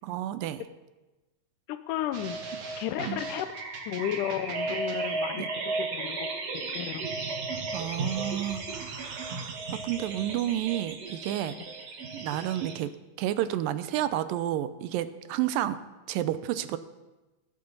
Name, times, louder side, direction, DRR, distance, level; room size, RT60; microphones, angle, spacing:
voice 1, 0.0-0.6 3.1-3.2 5.3-5.5 7.7-11.6 12.1-15.8 16.1-16.8, right 12 dB, 85° right, 13 dB, 2.3 m, -31 dB
voice 2, 1.7-2.4 2.8-3.5 3.9-6.3 6.7-7.1, left 11 dB, 80° left, 10 dB, 2.0 m, -33 dB
sound 1, 2.1-12.8, right 3 dB, 55° right, 2.3 m, -35 dB
20.5 x 9.2 x 4.0 m, 1.1 s
omnidirectional pair, 3.9 m